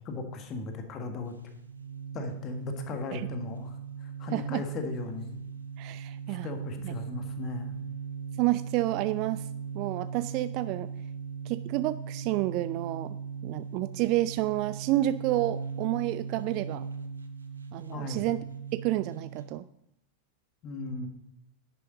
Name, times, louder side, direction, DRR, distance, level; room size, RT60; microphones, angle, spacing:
voice 1, 0.1-1.3 2.1-5.4 6.3-7.8 17.9-18.3 20.6-21.1, left 3 dB, 30° left, 5 dB, 1.6 m, -37 dB
sound 1, 1.3-19.5, right 6 dB, 75° right, 0.9 m, -39 dB
voice 2, 4.3-4.6 5.8-6.5 6.8-6.9 8.4-9.4 9.7-10.9 11.5-13.2 13.4-16.8 17.7-18.5 18.7-19.6, right 16 dB, 40° right, 15 dB, 0.3 m, -29 dB
11.0 x 9.1 x 3.9 m, 0.82 s
figure-of-eight pair, 90°, 0 cm